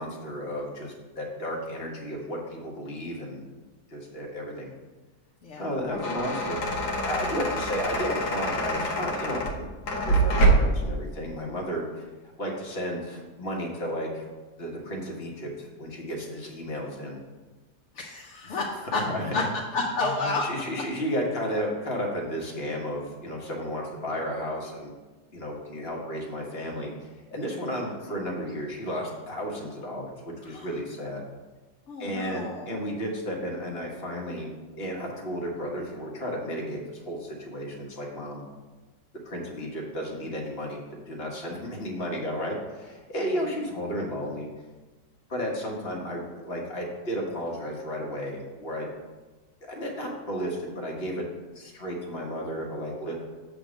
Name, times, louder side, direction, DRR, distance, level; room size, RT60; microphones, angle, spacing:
voice 1, 0.0-3.4 3.9-4.7 5.6-6.6 7.0-9.7 10.0-12.1 12.4-14.2 14.6-17.2 18.9-19.3 20.0-24.9 25.3-31.2 32.0-34.5 34.8-38.4 39.2-40.8 41.1-44.5 45.3-48.9 49.6-51.2 51.5-53.1, equal, 40° left, -1 dB, 1.5 m, -33 dB
sound 1, 5.7-10.9, right 2 dB, 80° left, 1.6 m, -25 dB
voice 2, 17.9-19.4 19.7-20.4 27.7-27.8 30.4-30.7 31.9-32.8, left 3 dB, 55° left, -2 dB, 1.0 m, -30 dB
7.7 x 3.6 x 6.2 m, 1.2 s
omnidirectional pair, 1.7 m